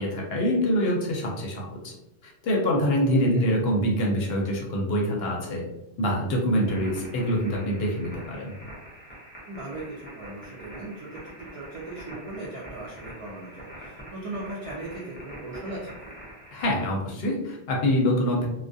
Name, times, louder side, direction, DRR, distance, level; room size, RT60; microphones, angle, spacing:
voice 1, 0.0-1.9 2.2-5.6 6.0-8.6 16.5-18.5, equal, 65° left, -1 dB, 0.8 m, -25 dB
voice 2, 3.1-3.5 6.8-7.0 9.5-16.1, right 2 dB, 55° right, -6 dB, 0.3 m, -38 dB
sound 1, 6.6-16.7, equal, 10° left, 0.6 m, -45 dB
2.3 x 2.1 x 2.5 m, 0.90 s
omnidirectional pair, 1.2 m